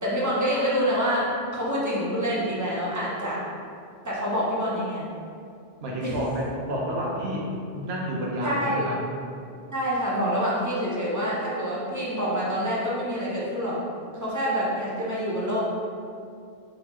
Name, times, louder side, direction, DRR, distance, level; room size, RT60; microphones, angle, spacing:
voice 1, 0.0-3.4 4.0-5.0 6.0-6.1 8.4-8.9 9.7-13.8 14.1-15.6, equal, 20° right, -6 dB, 0.7 m, -26 dB
voice 2, 5.8-9.0, equal, 70° right, -3 dB, 1.0 m, -29 dB
3.8 x 3.8 x 3.0 m, 2.4 s
omnidirectional pair, 1.1 m